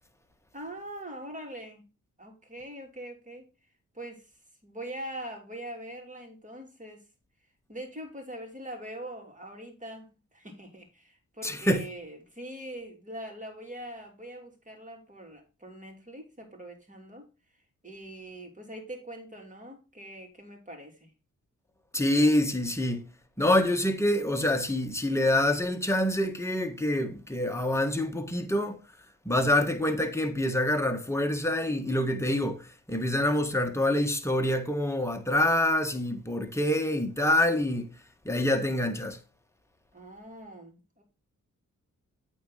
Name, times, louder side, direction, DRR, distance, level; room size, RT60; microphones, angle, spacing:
voice 1, 0.5-1.8 2.2-3.4 3.9-4.3 4.6-7.0 7.7-17.3 17.8-21.1 39.9-41.0, right 1 dB, 25° right, 2.9 m, -42 dB
voice 2, 11.4-11.9 21.9-23.1 23.4-28.8 29.2-37.9 38.2-39.2, left 1 dB, 10° left, 1.5 m, -26 dB
8.6 x 3.7 x 5.6 m
cardioid pair, 60°, 32 cm